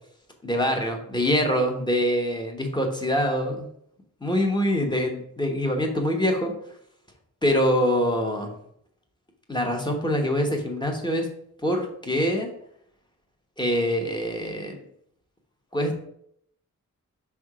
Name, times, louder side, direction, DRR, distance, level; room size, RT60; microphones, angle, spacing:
voice 1, 0.4-3.6 4.2-6.5 7.4-8.5 9.5-11.3 11.6-12.5 13.6-14.8 15.7-15.9, equal, 15° left, 2 dB, 1.1 m, -24 dB
5.5 x 3.5 x 4.8 m, 0.69 s
wide cardioid pair, 125°, 32 cm